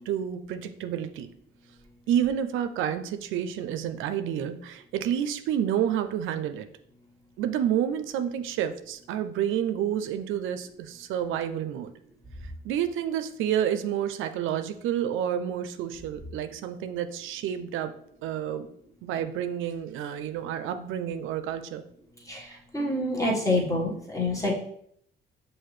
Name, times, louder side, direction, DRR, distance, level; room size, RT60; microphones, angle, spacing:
voice 1, 0.1-1.3 2.1-6.7 7.4-11.9 12.6-17.9 18.2-18.7 19.0-21.8, right 9 dB, 85° right, 9 dB, 0.4 m, -29 dB
voice 2, 22.7-24.5, left 2 dB, 15° left, -2 dB, 1.3 m, -26 dB
5.7 x 2.6 x 3.1 m, 0.68 s
cardioid pair, 90°, 20 cm